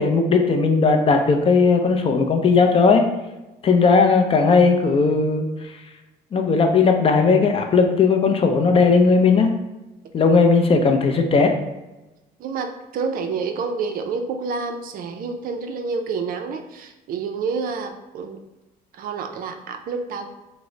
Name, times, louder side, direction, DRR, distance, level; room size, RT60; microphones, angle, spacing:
voice 1, 0.0-3.0 3.6-5.5 6.3-9.5 10.1-11.5, left 4 dB, 35° left, 4 dB, 0.4 m, -17 dB
voice 2, 12.4-18.4 18.9-20.3, right 5 dB, 60° right, 6 dB, 0.4 m, -28 dB
3.6 x 2.0 x 3.1 m, 1.0 s
cardioid pair, 110°, 17 cm